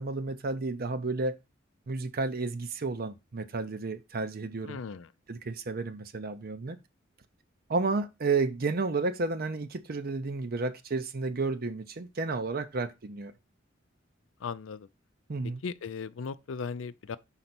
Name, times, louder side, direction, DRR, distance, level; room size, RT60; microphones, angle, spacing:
voice 1, 0.0-1.3 1.9-4.8 5.3-6.8 7.7-13.3 15.3-15.6, right 3 dB, 50° right, 0.6 m, -31 dB
voice 2, 4.6-5.1 14.4-14.9 15.6-17.2, left 5 dB, 80° left, 0.5 m, -37 dB
5.4 x 4.0 x 5.9 m
head